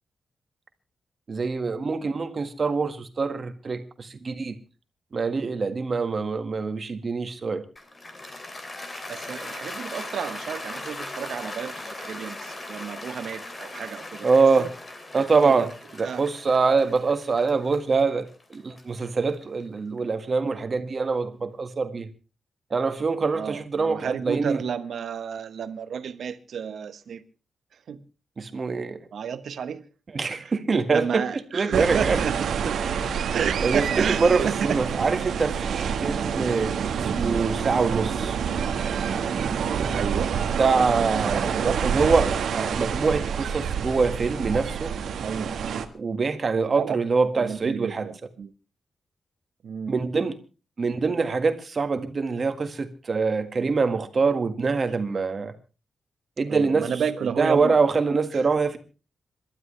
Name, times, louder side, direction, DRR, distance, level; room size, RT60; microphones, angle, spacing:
voice 1, 1.3-4.5 5.1-7.6 14.2-14.7 15.1-15.7 16.0-22.1 22.7-24.6 28.4-29.0 30.1-31.2 31.5-32.2 33.6-36.7 37.0-38.4 40.6-44.9 45.9-48.1 49.9-50.4 50.8-55.5 56.4-56.9 57.4-58.8, right 4 dB, 35° right, 1.8 m, -24 dB
Cheering / Applause, 7.8-20.0, left 2 dB, 25° left, 2.8 m, -39 dB
voice 2, 9.1-14.3 14.6-14.7 15.1-15.7 16.0-16.2 23.3-27.2 27.9-28.0 29.1-29.8 30.4-30.5 30.9-32.8 33.3-34.8 36.2-36.5 40.0-40.4 40.9-41.8 45.2-45.5 46.8-47.0 47.4-48.5 49.6-50.0 56.5-57.8 58.3-58.4, right 7 dB, 70° right, 1.2 m, -31 dB
sound 1, 31.7-45.9, right 7 dB, 90° right, 1.5 m, -27 dB
27.5 x 12.5 x 3.3 m
wide cardioid pair, 150°, 0 cm